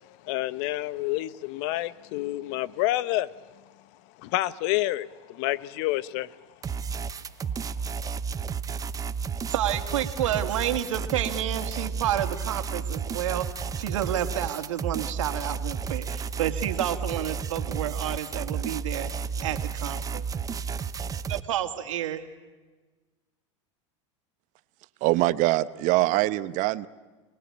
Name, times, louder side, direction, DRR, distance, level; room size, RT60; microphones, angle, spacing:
voice 1, 0.2-3.3 4.2-6.4, left 16 dB, 60° left, 1.0 m, -28 dB
sound 1, 6.6-21.4, right 6 dB, 20° right, 0.9 m, -32 dB
voice 2, 9.5-13.5 13.8-19.1 19.4-20.3 21.3-22.2, right 11 dB, 85° right, 2.2 m, -30 dB
voice 3, 25.0-26.9, right 18 dB, 50° right, 1.0 m, -23 dB
29.5 x 20.5 x 8.6 m
hypercardioid pair, 110°, 16 cm